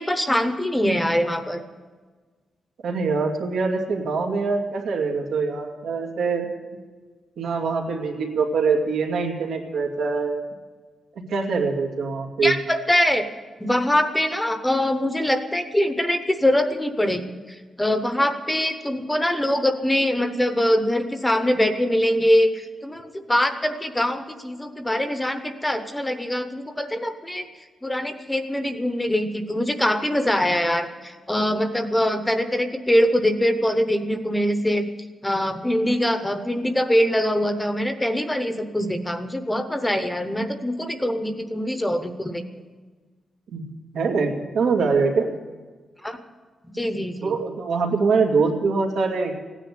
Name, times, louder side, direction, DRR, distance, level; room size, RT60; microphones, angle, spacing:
voice 1, 0.0-1.6 12.4-13.3 13.6-17.2 17.5-27.4 27.8-34.8 35.2-42.4 46.0-46.2 46.7-47.4, equal, 5° left, 8 dB, 0.9 m, -23 dB
voice 2, 2.8-6.5 7.4-10.5 11.3-12.5 34.1-34.2 43.5-43.6 43.9-45.3 47.2-49.4, right 4 dB, 85° right, 1 dB, 2.5 m, -23 dB
16.0 x 10.0 x 8.5 m, 1.4 s
wide cardioid pair, 180°, 0 cm